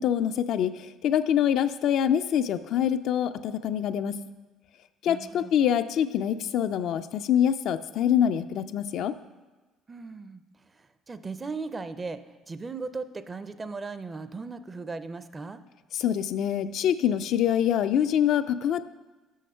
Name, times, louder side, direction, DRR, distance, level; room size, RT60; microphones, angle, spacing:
voice 1, 0.0-4.2 5.0-9.1 15.9-18.9, left 9 dB, 65° left, 10 dB, 0.3 m, -25 dB
voice 2, 5.1-5.5 9.9-15.6, right 4 dB, 30° right, 12 dB, 0.5 m, -37 dB
6.4 x 6.1 x 5.5 m, 1.2 s
supercardioid pair, 70°, 0 cm